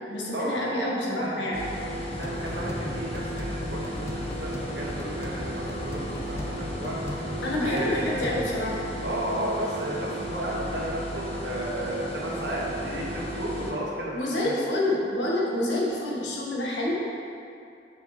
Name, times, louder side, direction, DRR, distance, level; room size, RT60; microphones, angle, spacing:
voice 1, 0.1-1.7 7.4-8.8 14.1-17.1, left 1 dB, 80° left, -4 dB, 1.3 m, -27 dB
sound 1, 1.5-13.7, equal, 35° left, 0.7 m, -34 dB
sound 2, 2.1-8.5, left 1 dB, 15° left, 0.3 m, -37 dB
voice 2, 2.2-7.0 7.3-8.2 9.0-14.5, right 1 dB, 70° right, -4 dB, 1.3 m, -33 dB
6.5 x 6.1 x 3.0 m, 2.5 s
head